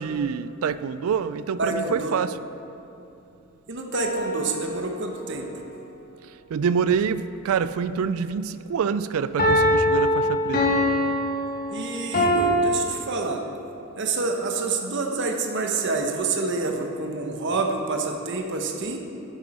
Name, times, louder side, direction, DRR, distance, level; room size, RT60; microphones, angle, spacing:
voice 1, 0.0-2.4 6.5-10.6, right 6 dB, 75° right, 14 dB, 0.3 m, -26 dB
voice 2, 1.6-2.2 3.7-5.5 11.7-13.4 14.0-19.0, right 3 dB, 55° right, 3 dB, 0.9 m, -27 dB
sound 1, 3.9-5.0 9.4-12.6, equal, 40° left, 1.3 m, -23 dB
9.2 x 9.0 x 4.2 m, 2.9 s
head